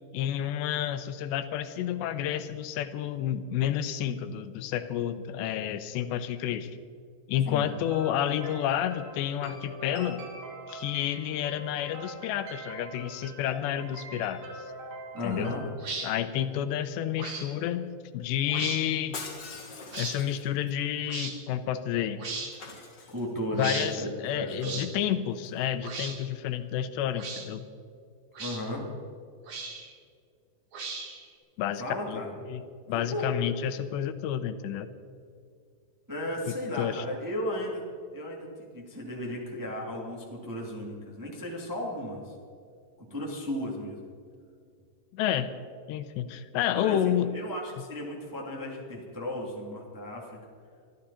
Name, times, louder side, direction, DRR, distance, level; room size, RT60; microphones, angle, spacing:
voice 1, 0.1-6.8 7.3-10.3 10.7-14.4 15.2-15.6 16.0-19.2 20.0-22.2 23.6-27.6 31.6-31.8 32.1-32.2 32.5-32.6 32.9-34.9 36.8-37.0 45.1-45.5 45.9-47.3, left 10 dB, 90° left, 11 dB, 2.9 m, -30 dB
sound 1, 7.6-15.6, right 2 dB, 80° right, 5.2 m, -43 dB
voice 2, 15.1-15.7 23.1-24.8 28.4-28.9 31.8-32.3 33.1-33.3 33.6-33.7 36.1-37.8 38.1-42.3 43.1-44.1 46.7-50.4, left 1 dB, 5° right, -2 dB, 1.5 m, -35 dB
sound 2, 15.8-16.1 17.2-17.5 18.5-18.8 19.9-20.2 21.1-21.3 22.2-22.5 23.6-23.9 24.6-24.9 25.8-26.2 27.1-27.5 28.3-28.6 29.5-29.9 30.7-31.2, right 4 dB, 45° right, 2.1 m, -36 dB
Shatter, 19.1-20.7 22.5-23.6 25.4-25.6, left 4 dB, 50° left, 1.3 m, -42 dB
24.0 x 13.0 x 4.2 m, 2.3 s
omnidirectional pair, 5.0 m